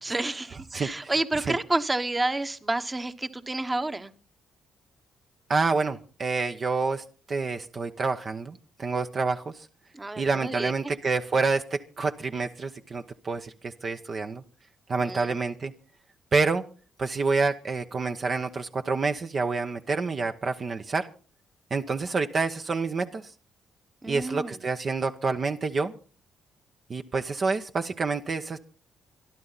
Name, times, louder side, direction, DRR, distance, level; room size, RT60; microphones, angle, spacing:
voice 1, 0.0-4.1 9.9-10.7 15.0-15.3 24.0-24.6, right 2 dB, 20° right, 10 dB, 1.3 m, -29 dB
voice 2, 0.7-1.6 5.5-9.7 10.2-14.4 14.9-15.7 16.3-16.6 17.0-21.1 21.7-23.3 24.1-25.9 26.9-28.6, right 4 dB, 40° right, 6 dB, 1.0 m, -28 dB
26.0 x 11.0 x 4.1 m, 0.38 s
cardioid pair, 90°, 0 cm